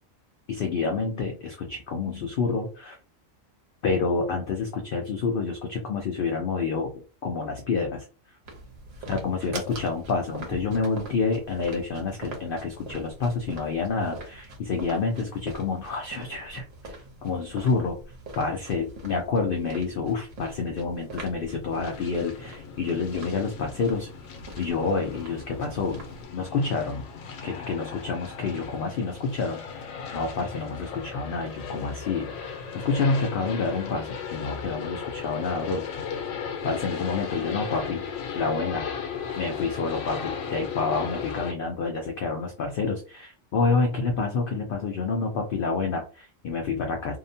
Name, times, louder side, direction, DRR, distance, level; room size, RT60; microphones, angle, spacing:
voice 1, 0.5-3.0 3.8-8.0 9.1-18.0 18.4-24.1 24.6-26.0 26.3-27.1 27.4-36.2 36.6-38.0 38.3-38.9 39.4-47.2, left 4 dB, 65° left, 2 dB, 0.5 m, -28 dB
sound 1, 8.5-26.3, right 2 dB, 70° right, 1.2 m, -43 dB
sound 2, 21.7-41.5, left 6 dB, 80° left, 1.0 m, -36 dB
2.8 x 2.1 x 2.6 m, 0.36 s
omnidirectional pair, 1.4 m